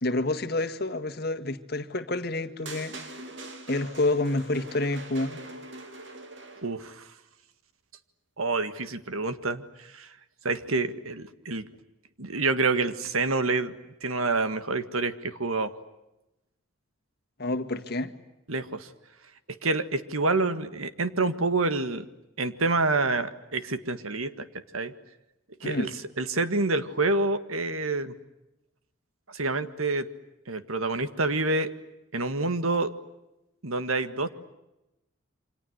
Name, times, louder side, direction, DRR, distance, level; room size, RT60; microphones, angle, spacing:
voice 1, 0.0-3.0 3.7-5.4 17.4-18.1 25.6-25.9, left 2 dB, 50° left, 1.9 m, -28 dB
sound 1, 2.7-6.9, right 2 dB, 60° right, 3.1 m, -43 dB
voice 2, 6.6-7.1 8.4-10.1 10.4-11.7 12.2-13.7 14.0-15.7 18.5-18.9 19.5-22.1 22.4-24.5 24.7-24.9 25.6-25.9 26.2-28.1 29.3-30.1 30.5-31.7 32.1-32.9 33.6-34.3, right 3 dB, 90° right, 1.8 m, -27 dB
28.5 x 25.5 x 8.0 m
head